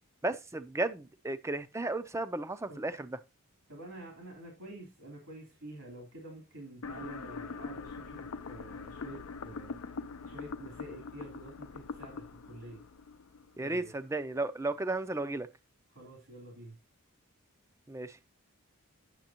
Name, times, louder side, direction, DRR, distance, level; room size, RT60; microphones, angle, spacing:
voice 1, 0.2-3.2 13.6-15.5 17.9-18.2, right 2 dB, 15° right, 0.5 m, -34 dB
voice 2, 3.7-10.0 10.2-12.8 13.6-13.9 15.9-16.7, right 1 dB, 75° right, 3.0 m, -48 dB
sound 1, 6.8-13.9, left 4 dB, 75° left, 0.5 m, -43 dB
9.1 x 6.9 x 2.9 m
head